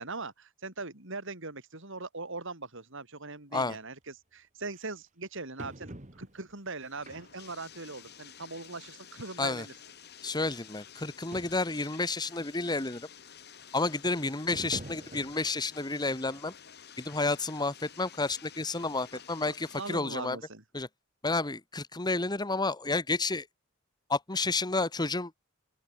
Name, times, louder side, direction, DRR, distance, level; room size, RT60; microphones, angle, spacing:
voice 1, 0.0-9.7 19.4-20.6, right 3 dB, 65° right, 4.0 m, -41 dB
sound 1, 3.7-3.8 4.7-4.8 5.6-6.5 7.1-7.6 8.0-8.1 9.0-9.1 9.3-9.4 10.3-10.4 10.7-10.8 11.0-11.1 11.3-11.8 12.3-12.4 14.5-15.8 16.2-16.4 16.9-17.0, right 1 dB, 35° right, 2.6 m, -45 dB
Bathtub (filling or washing), 6.1-20.1, left 8 dB, 55° left, 7.1 m, -51 dB
voice 2, 10.2-13.1 13.7-16.5 17.0-20.4 20.7-20.9 21.2-23.5 24.1-25.3, left 3 dB, 20° left, 1.5 m, -31 dB
open air
head